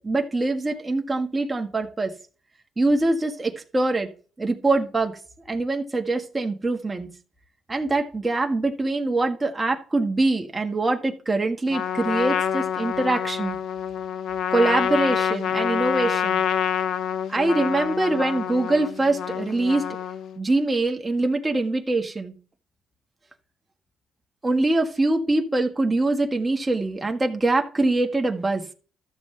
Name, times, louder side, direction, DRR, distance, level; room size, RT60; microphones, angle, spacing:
voice 1, 0.0-2.1 2.8-4.1 4.4-5.1 5.5-7.1 7.7-13.6 14.5-16.4 17.3-19.9 20.4-22.3 24.4-28.6, right 2 dB, 20° right, 3 dB, 1.6 m, -23 dB
Trumpet, 11.7-20.4, left 8 dB, 75° left, 0.8 m, -27 dB
13.0 x 7.2 x 3.3 m, 0.38 s
cardioid pair, 90°, 0 cm